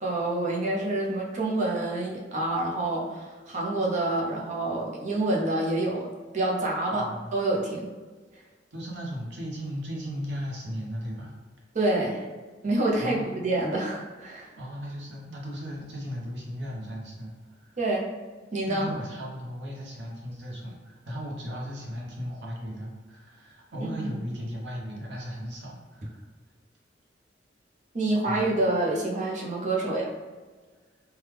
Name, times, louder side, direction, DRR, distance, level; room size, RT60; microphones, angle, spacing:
voice 1, 0.0-6.1 6.3-7.0 7.3-7.9 11.7-12.2 12.6-14.5 17.8-18.1 18.5-18.9 23.8-24.1 27.9-30.1, right 2 dB, 40° right, -2 dB, 0.6 m, -27 dB
voice 2, 6.9-7.3 8.7-11.4 13.0-13.4 14.6-17.8 18.7-26.2 28.2-28.5, equal, 75° right, -2 dB, 0.8 m, -36 dB
3.3 x 2.2 x 3.2 m, 1.4 s
head